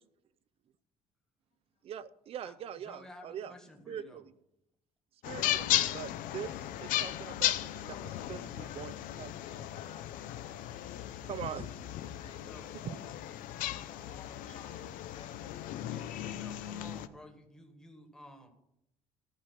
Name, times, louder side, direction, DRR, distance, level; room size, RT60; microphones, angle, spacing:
voice 1, 1.8-3.5 3.9-4.3 5.2-8.0 8.3-9.4 11.1-11.7 12.7-13.0, right 9 dB, 45° right, 15 dB, 0.5 m, -43 dB
voice 2, 2.8-4.2 12.4-12.8 15.9-18.5, left 1 dB, 5° left, 2 dB, 1.5 m, -53 dB
sound 1, 5.2-17.1, left 13 dB, 80° left, 0.6 m, -36 dB
voice 3, 7.9-8.9 9.4-11.1 11.5-13.0 13.7-16.6, left 5 dB, 55° left, 2 dB, 3.3 m, -57 dB
14.0 x 4.8 x 9.0 m, 0.83 s
cardioid pair, 160°, 14 cm